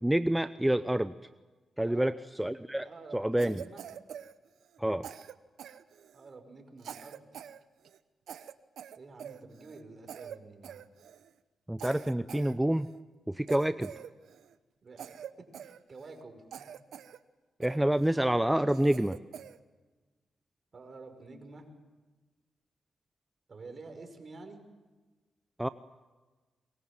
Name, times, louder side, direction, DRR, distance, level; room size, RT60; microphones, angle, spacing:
voice 1, 0.0-1.1 1.8-2.9 3.1-3.6 4.8-5.1 11.7-12.9 13.3-13.9 17.6-19.2 25.6-25.7, right 1 dB, 10° right, 12 dB, 0.8 m, -28 dB
voice 2, 2.8-3.8 6.1-7.3 9.0-10.8 14.8-15.1 15.4-16.6 20.7-21.7 23.5-24.6, right 3 dB, 50° right, 6 dB, 5.6 m, -49 dB
Cough, 3.4-4.8 5.0-6.3 6.8-7.6 7.8-8.0 8.3-9.8 10.1-10.4 10.6-11.3 11.8-13.0 13.5-14.5 15.0-16.2 16.5-17.2 17.6-18.2 18.7-19.6, right 9 dB, 80° right, 1.0 m, -46 dB
25.5 x 23.0 x 7.5 m, 1.3 s
cardioid pair, 60°, 0 cm